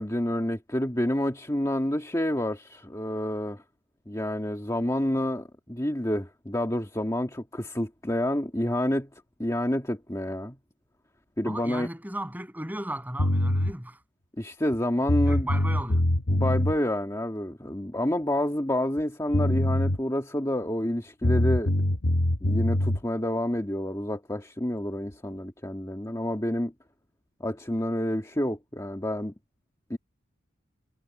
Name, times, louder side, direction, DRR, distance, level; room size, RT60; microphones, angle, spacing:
voice 1, 0.0-3.6 4.1-9.1 9.4-10.6 11.4-11.9 14.4-15.5 16.3-21.7 22.4-26.7 27.4-29.3 29.9-30.0, left 1 dB, 15° left, 1.8 m, -28 dB
voice 2, 11.5-14.0 15.2-16.1, right 1 dB, 10° right, 7.1 m, -36 dB
sound 1, 13.2-13.7 14.7-14.8 15.1-16.7 19.0-19.1 19.3-20.0 21.2-23.0, left 1 dB, 70° left, 1.2 m, -24 dB
head